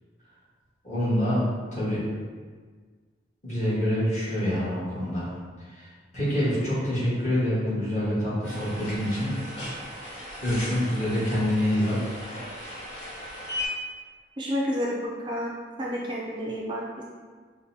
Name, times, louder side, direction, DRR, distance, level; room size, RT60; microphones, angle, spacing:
voice 1, 0.8-1.4 1.7-2.0 3.4-5.3 5.7-5.9 6.1-9.3 10.4-12.2, equal, 40° left, -10 dB, 1.4 m, -26 dB
sound 1, 8.4-13.7, left 1 dB, 85° left, 1.3 m, -37 dB
voice 2, 14.4-17.0, equal, 25° right, -3 dB, 0.3 m, -30 dB
5.0 x 2.2 x 2.7 m, 1.5 s
head